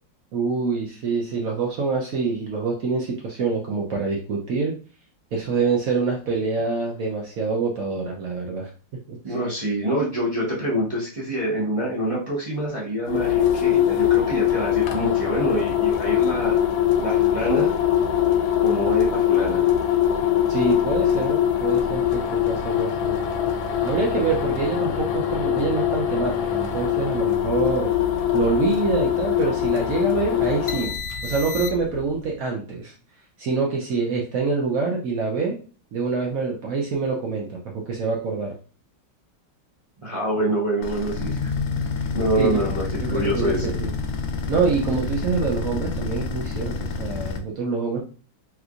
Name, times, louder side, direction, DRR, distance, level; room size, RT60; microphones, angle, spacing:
voice 1, 0.3-4.7 5.3-8.7 9.1-9.2 20.5-23.2 23.8-27.9 28.3-30.9 31.2-32.9 33.4-35.6 35.9-38.5 42.4-42.7 43.0-43.9 44.5-48.0, right 4 dB, 65° right, -1 dB, 0.9 m, -25 dB
voice 2, 9.2-17.7 18.6-19.6 40.0-41.5 42.1-43.7, right 1 dB, 45° right, -6 dB, 0.4 m, -26 dB
sound 1, 13.0-32.0, left 11 dB, 90° left, 1.3 m, -22 dB
sound 2, 40.8-47.4, left 4 dB, 70° left, 0.9 m, -28 dB
3.4 x 3.1 x 2.4 m, 0.38 s
omnidirectional pair, 2.0 m